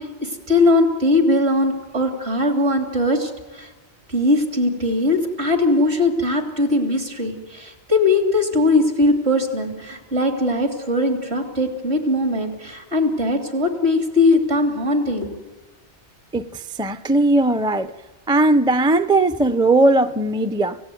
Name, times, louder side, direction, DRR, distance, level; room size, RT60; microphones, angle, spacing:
voice 1, 0.0-3.7 4.1-15.3, left 2 dB, 65° right, 3.6 m, -20 dB
voice 2, 16.3-17.9 18.3-20.8, right 2 dB, 5° right, 0.5 m, -18 dB
28.5 x 16.5 x 9.4 m
omnidirectional pair, 1.2 m